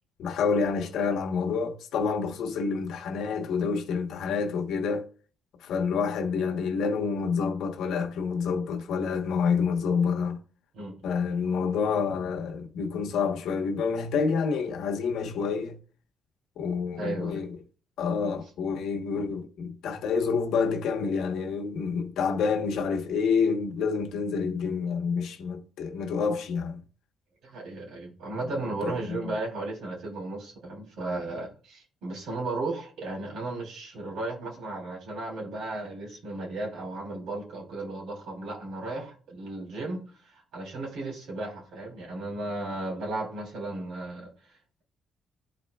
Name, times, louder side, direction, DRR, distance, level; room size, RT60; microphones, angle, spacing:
voice 1, 0.2-5.1 5.6-10.4 11.0-15.8 16.6-17.6 18.0-26.8 28.8-29.3, left 5 dB, 80° left, 1.1 m, -28 dB
voice 2, 10.7-11.1 17.0-17.4 27.4-44.8, right 2 dB, 90° right, 3.1 m, -35 dB
12.5 x 4.3 x 2.3 m
cardioid pair, 135°, 0 cm